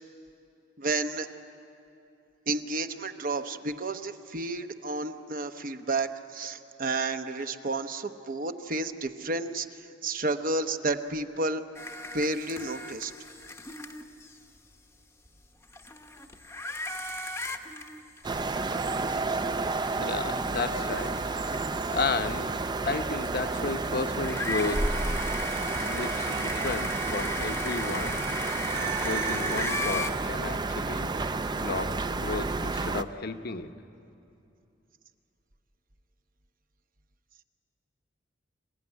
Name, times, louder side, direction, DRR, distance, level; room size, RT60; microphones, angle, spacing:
voice 1, 0.8-1.3 2.5-9.7 10.0-11.6 12.1-13.1, right 2 dB, 45° right, 8 dB, 0.9 m, -31 dB
sound 1, 11.7-14.4 15.2-15.3 15.6-19.1 19.5-19.6 20.3-21.9 23.3-30.1, left 1 dB, 15° left, 0.9 m, -36 dB
sound 2, 18.2-33.0, right 3 dB, 25° right, 0.4 m, -31 dB
voice 2, 20.0-21.2 21.8-22.5 22.8-24.9 25.6-28.2 28.7-31.1 31.5-33.7, left 3 dB, 55° left, 8 dB, 0.9 m, -33 dB
26.5 x 16.0 x 9.7 m, 2.7 s
head